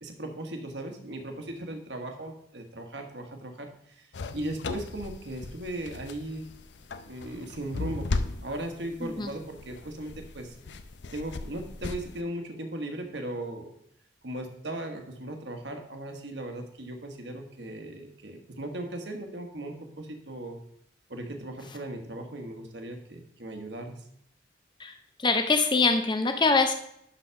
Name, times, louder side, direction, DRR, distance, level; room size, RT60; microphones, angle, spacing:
voice 1, 0.0-4.1 4.3-6.5 7.1-8.1 8.4-10.6 11.1-13.7 14.2-20.6 21.1-24.0, right 1 dB, 65° right, 4 dB, 1.3 m, -37 dB
sound 1, 4.1-12.2, left 3 dB, 70° left, 0.6 m, -37 dB
voice 2, 25.2-26.7, left 3 dB, 25° left, 6 dB, 0.6 m, -24 dB
11.5 x 4.0 x 5.7 m, 0.72 s
head